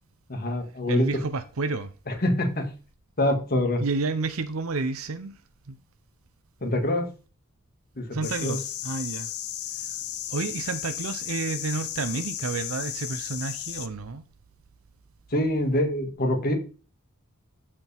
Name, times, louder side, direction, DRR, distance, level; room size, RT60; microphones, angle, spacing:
voice 1, 0.3-1.1 2.1-2.7 3.2-3.8 6.6-7.1 8.0-8.6 15.3-16.5, left 1 dB, 45° left, 1.9 m, -25 dB
voice 2, 0.9-1.9 3.8-5.3 5.7-5.8 8.1-9.3 10.3-14.2, right 3 dB, 75° right, 0.7 m, -30 dB
sound 1, 8.2-13.9, left 11 dB, 90° left, 0.7 m, -34 dB
14.0 x 4.9 x 3.5 m
head